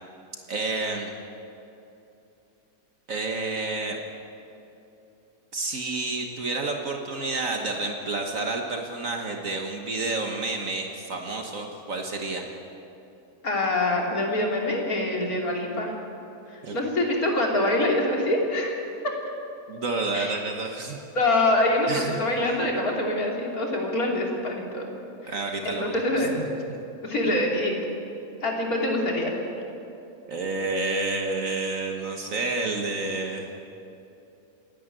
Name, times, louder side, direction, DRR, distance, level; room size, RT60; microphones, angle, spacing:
voice 1, 0.5-1.1 3.1-4.0 5.5-12.4 16.6-16.8 19.7-21.0 21.9-22.6 25.2-26.8 30.3-33.5, right 3 dB, 65° right, 2 dB, 1.7 m, -30 dB
voice 2, 13.4-16.0 16.5-18.8 20.1-20.4 21.1-24.8 25.2-25.4 25.6-26.3 27.0-27.8 28.4-29.3, left 1 dB, 75° left, -1 dB, 3.4 m, -25 dB
28.0 x 10.5 x 9.1 m, 2.8 s
omnidirectional pair, 1.6 m